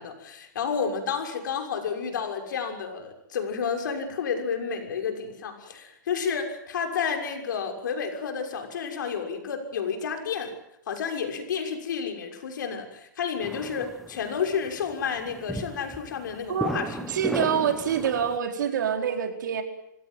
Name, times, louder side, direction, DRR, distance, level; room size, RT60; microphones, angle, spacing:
voice 1, 0.0-10.5 10.9-16.9, left 6 dB, 75° left, 5 dB, 6.3 m, -31 dB
sound 1, 13.4-18.4, equal, ahead, 1.1 m, -36 dB
voice 2, 16.5-19.6, right 8 dB, 75° right, 5 dB, 4.8 m, -26 dB
26.0 x 17.5 x 9.3 m, 0.81 s
hypercardioid pair, 150°, 10 cm